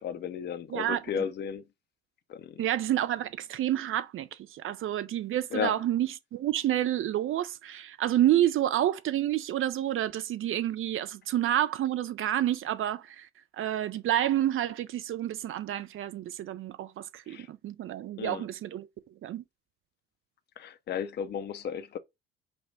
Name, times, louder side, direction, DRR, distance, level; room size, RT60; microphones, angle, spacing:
voice 1, 0.0-1.6 2.3-2.6 5.5-5.8 17.3-17.5 18.2-18.5 20.6-22.0, left 8 dB, 35° left, 0.6 m, -34 dB
voice 2, 0.7-1.0 2.6-13.3 13.5-18.9 19.2-19.4, right 12 dB, 45° right, 0.6 m, -29 dB
5.3 x 2.2 x 3.5 m
hypercardioid pair, 55°, 30 cm